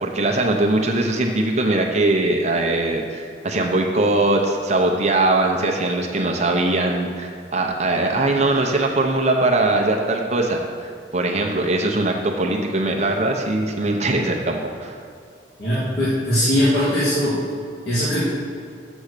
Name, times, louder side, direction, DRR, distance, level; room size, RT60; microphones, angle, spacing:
voice 1, 0.0-15.0, right 2 dB, 40° right, 1 dB, 0.7 m, -21 dB
voice 2, 15.6-17.4 17.8-18.2, equal, 60° left, -11 dB, 2.5 m, -20 dB
7.2 x 7.0 x 6.6 m, 2.4 s
head